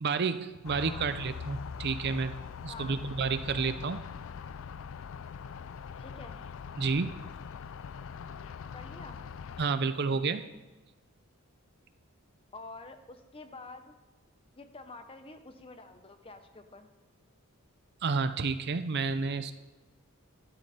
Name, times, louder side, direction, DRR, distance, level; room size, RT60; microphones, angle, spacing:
voice 1, 0.0-2.3 2.6-4.0 6.8-7.1 9.6-10.5 18.0-19.5, right 4 dB, 50° right, 11 dB, 0.5 m, -30 dB
sound 1, 0.6-9.7, left 6 dB, 60° left, 0.4 m, -42 dB
voice 2, 2.7-3.0 6.0-6.4 8.7-9.2 12.5-13.9 14.5-16.9, left 3 dB, 25° left, 8 dB, 0.8 m, -48 dB
12.0 x 12.0 x 4.3 m, 1.2 s
head